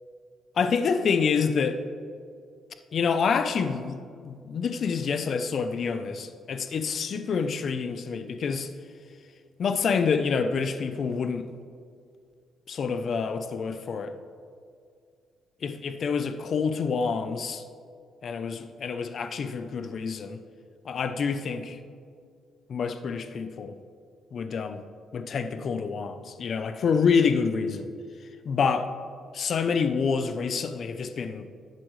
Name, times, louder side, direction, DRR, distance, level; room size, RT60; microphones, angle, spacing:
voice 1, 0.6-1.8 2.9-8.7 9.6-11.5 12.7-14.1 15.6-17.6 18.2-20.4 20.8-21.8 22.7-23.8 24.3-24.8 25.1-27.9 28.4-28.9 29.3-31.5, left 5 dB, 55° left, 9 dB, 0.7 m, -27 dB
12.5 x 8.5 x 3.2 m, 2.2 s
cardioid pair, 90°, 0 cm